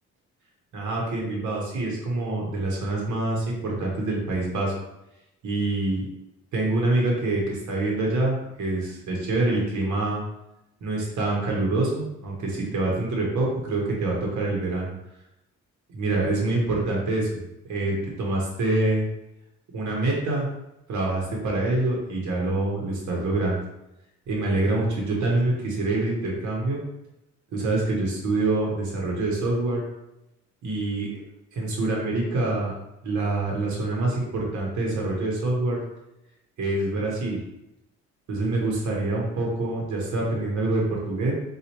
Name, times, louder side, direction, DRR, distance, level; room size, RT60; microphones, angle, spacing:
voice 1, 0.7-4.7 5.4-6.1 6.5-10.2 10.8-14.9 15.9-17.3 17.7-19.1 19.7-20.5 20.9-23.6 24.3-26.8 27.5-29.8 30.6-31.1 31.5-32.7 33.0-35.8 36.6-37.4 38.3-41.3, right 2 dB, 70° right, -2 dB, 1.0 m, -26 dB
4.1 x 2.4 x 2.9 m, 0.87 s
cardioid pair, 90°, 30 cm